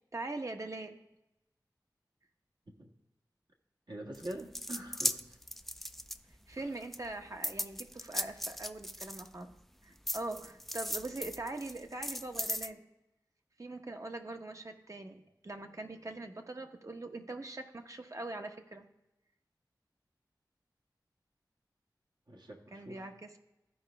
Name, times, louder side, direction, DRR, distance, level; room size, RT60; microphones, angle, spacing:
voice 1, 0.1-1.0 6.5-9.5 9.8-12.8 13.6-18.8 22.7-23.4, right 2 dB, 45° right, 5 dB, 1.0 m, -42 dB
voice 2, 3.9-5.4 6.6-6.7 22.3-23.1, right 1 dB, 70° right, 0 dB, 1.6 m, -45 dB
sound 1, 4.1-6.6 6.9-9.6 10.1-12.7, equal, 5° left, 0.3 m, -37 dB
14.0 x 5.0 x 3.4 m, 0.91 s
wide cardioid pair, 55°, 8 cm